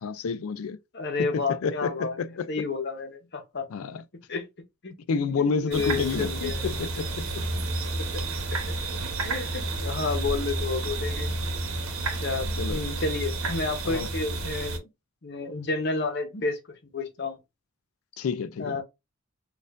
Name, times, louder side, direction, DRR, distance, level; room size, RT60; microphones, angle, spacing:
voice 1, 0.0-0.8 1.2-2.5 3.7-4.0 5.1-7.4 12.6-12.8 13.9-14.1 18.2-18.8, left 5 dB, 75° left, 0.4 m, -29 dB
voice 2, 0.9-2.2 2.5-3.7 4.3-4.5 4.8-4.9 5.4-6.6 7.4-7.7 8.0-8.2 9.2-11.8 12.2-14.8 15.2-16.6 16.9-17.4 18.6-18.8, left 4 dB, 50° left, 0.8 m, -31 dB
sound 1, 5.7-14.8, right 2 dB, 75° right, 1.0 m, -30 dB
4.2 x 2.4 x 2.5 m
head